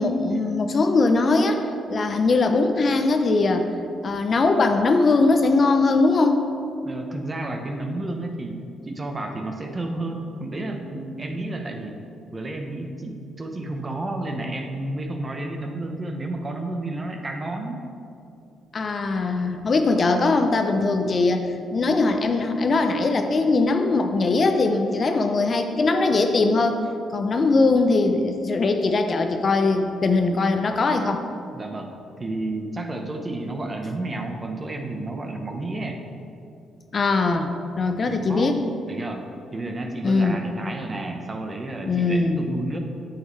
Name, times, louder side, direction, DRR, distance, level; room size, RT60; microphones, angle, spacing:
voice 1, 0.0-1.6 1.9-3.7 4.0-6.5 18.7-26.8 27.1-31.2 36.9-38.6 40.0-40.4 41.9-42.4, left 3 dB, 40° left, 6 dB, 0.6 m, -21 dB
voice 2, 6.8-12.0 12.3-17.9 31.5-31.9 32.2-36.0 38.1-38.5 38.8-39.3 39.5-42.8, right 2 dB, 25° right, 4 dB, 0.9 m, -31 dB
9.0 x 7.5 x 3.2 m, 2.5 s
cardioid pair, 90°, 0 cm